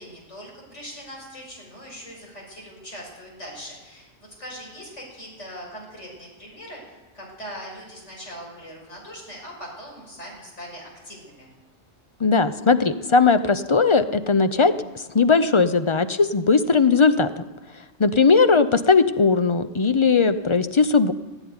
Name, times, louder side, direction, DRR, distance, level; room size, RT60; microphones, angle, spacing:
voice 1, 0.0-4.1 4.4-11.5, equal, 85° left, -1 dB, 5.9 m, -40 dB
voice 2, 12.2-14.7 15.1-17.4 18.0-21.1, left 4 dB, 35° left, 11 dB, 0.5 m, -18 dB
16.5 x 9.0 x 9.6 m, 1.2 s
omnidirectional pair, 1.2 m